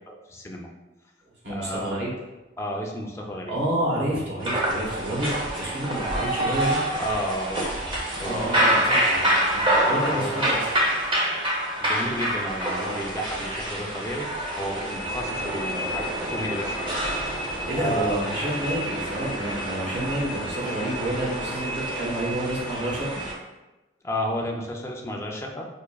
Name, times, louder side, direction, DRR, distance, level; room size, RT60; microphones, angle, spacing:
voice 1, 0.1-0.7 1.5-2.0 2.6-3.6 7.0-7.7 8.2-8.4 10.1-10.4 11.8-14.3 14.6-16.9 17.7-18.2 24.0-25.7, equal, 15° left, 0 dB, 0.4 m, -32 dB
voice 2, 1.4-2.1 3.5-5.3 5.6-6.8 8.2-10.7 17.7-23.2, right 1 dB, 70° right, -6 dB, 1.2 m, -29 dB
sound 1, 4.4-23.3, right 1 dB, 25° right, 0.7 m, -27 dB
4.9 x 2.5 x 2.3 m, 1.1 s
head